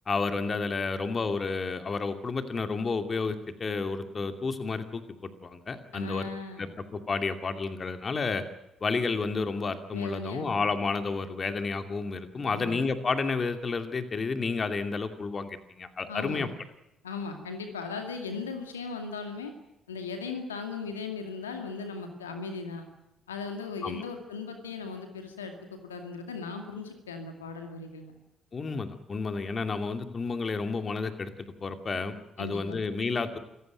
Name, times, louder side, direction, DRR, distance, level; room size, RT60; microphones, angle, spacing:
voice 1, 0.1-6.3 6.6-8.4 8.8-16.5 23.8-24.0 28.5-33.4, left 4 dB, 40° left, 8 dB, 2.5 m, -31 dB
voice 2, 5.9-6.7 9.9-10.5 12.4-12.8 16.1-16.5 17.0-19.5 19.9-22.9 23.3-28.1 32.4-32.8, left 4 dB, 85° left, 5 dB, 2.2 m, -38 dB
26.5 x 15.5 x 9.1 m, 0.86 s
figure-of-eight pair, 45°, 0 cm